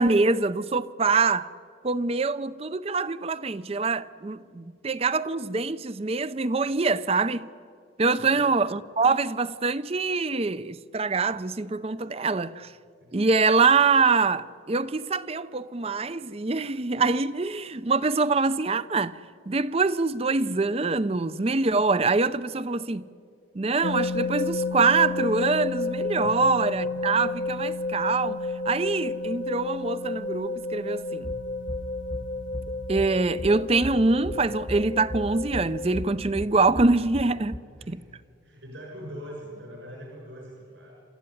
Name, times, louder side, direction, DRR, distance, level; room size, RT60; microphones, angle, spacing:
voice 1, 0.0-1.5 1.8-7.5 8.0-12.7 13.1-19.2 19.5-23.1 23.5-31.3 32.9-38.0, right 4 dB, 30° right, 0.5 m, -24 dB
voice 2, 8.1-8.5 11.3-11.4 12.0-12.1 13.0-13.1 26.2-26.5 37.7-40.9, equal, 70° right, 6.4 m, -43 dB
sound 1, 23.8-36.0, left 2 dB, 70° left, 0.9 m, -31 dB
sound 2, 31.2-37.6, equal, 15° left, 0.9 m, -38 dB
28.0 x 13.5 x 9.8 m
head